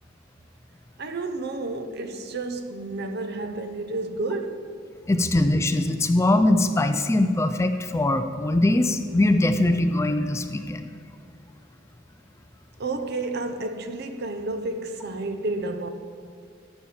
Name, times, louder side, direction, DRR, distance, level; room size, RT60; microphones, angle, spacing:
voice 1, 1.0-4.8 12.8-15.9, right 2 dB, 60° right, 0.7 m, -31 dB
voice 2, 5.1-10.9, left 1 dB, 15° left, 0.4 m, -22 dB
13.0 x 7.0 x 4.4 m
head